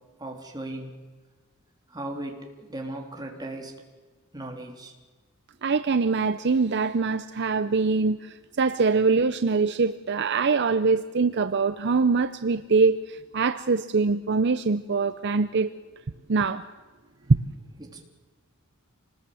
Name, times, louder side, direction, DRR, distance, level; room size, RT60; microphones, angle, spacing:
voice 1, 0.2-1.0 1.9-3.7 4.3-4.9 17.2-17.3 17.8-18.0, right 1 dB, 20° right, 1 dB, 3.3 m, -37 dB
voice 2, 5.6-15.7 16.3-16.6 17.3-17.4, right 4 dB, 50° right, 12 dB, 0.6 m, -23 dB
26.5 x 20.0 x 7.8 m, 1.3 s
head